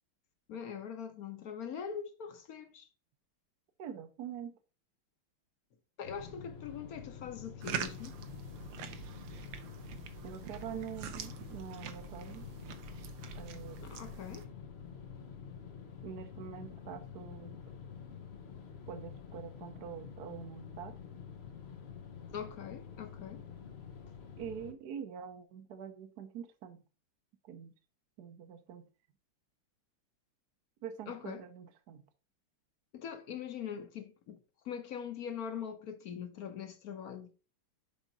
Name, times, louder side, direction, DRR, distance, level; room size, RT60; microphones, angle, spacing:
voice 1, 0.5-2.9 6.0-8.2 13.8-14.5 22.3-23.5 31.1-31.4 32.9-34.4 34.6-37.3, left 7 dB, 55° left, 1.1 m, -42 dB
voice 2, 3.8-4.6 10.2-12.5 13.4-14.0 16.0-17.6 18.9-21.1 24.4-26.8 27.4-27.7 28.2-28.9 30.8-32.0, right 8 dB, 60° right, 1.1 m, -45 dB
sound 1, 6.0-24.7, left 7 dB, 80° left, 0.5 m, -48 dB
sound 2, 7.6-14.5, right 8 dB, 85° right, 1.7 m, -44 dB
7.3 x 5.0 x 4.0 m
omnidirectional pair, 2.4 m